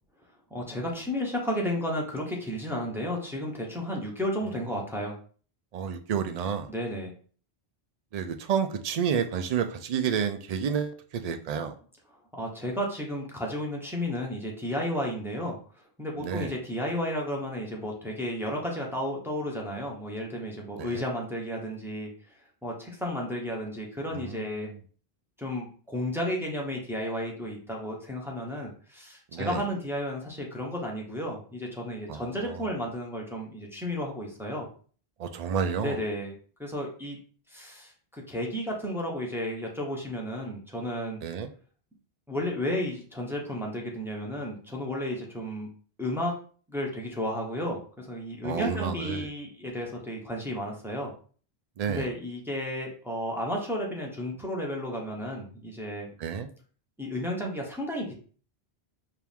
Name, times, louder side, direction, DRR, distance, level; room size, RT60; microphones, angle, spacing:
voice 1, 0.5-5.2 6.7-7.1 12.3-15.6 16.0-22.1 22.6-24.7 25.4-34.7 35.8-37.2 37.5-41.2 42.3-45.7 46.0-46.3 46.7-51.1 51.9-56.1 57.0-58.1, equal, ahead, -2 dB, 0.8 m, -33 dB
voice 2, 5.7-6.7 8.1-11.7 16.2-16.5 20.8-21.0 24.1-24.7 29.3-29.6 32.1-32.7 35.2-36.0 41.2-41.5 48.4-49.3 51.8-52.1 56.2-56.5, right 7 dB, 55° right, 8 dB, 0.4 m, -30 dB
4.5 x 2.5 x 3.5 m, 0.43 s
omnidirectional pair, 1.1 m